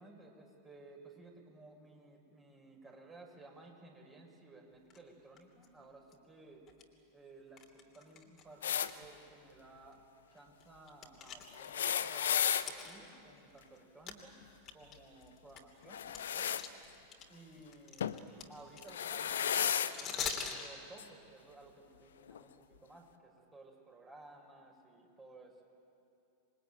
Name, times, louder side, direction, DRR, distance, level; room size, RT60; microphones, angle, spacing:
voice 1, 0.0-6.7 7.1-10.0 10.3-12.3 12.7-14.3 14.7-16.6 17.3-18.1 18.5-25.6, right 2 dB, 15° right, 0 dB, 5.7 m, -56 dB
sound 1, 4.9-5.0 5.4-5.7 6.1-6.2 6.7-6.8 7.6-8.9 9.2-9.3 9.9-10.0 10.4-12.0 12.6-13.8 14.1-14.2 14.6-17.2 17.5-20.7, left 7 dB, 30° left, 3.2 m, -43 dB
sound 2, 8.6-8.9 11.5-12.7 15.9-16.6 18.0-18.2 18.8-19.9 21.0-21.1 22.3-22.4, left 9 dB, 65° left, 1.0 m, -33 dB
27.0 x 22.5 x 9.2 m, 2.6 s
figure-of-eight pair, 90°, 0 cm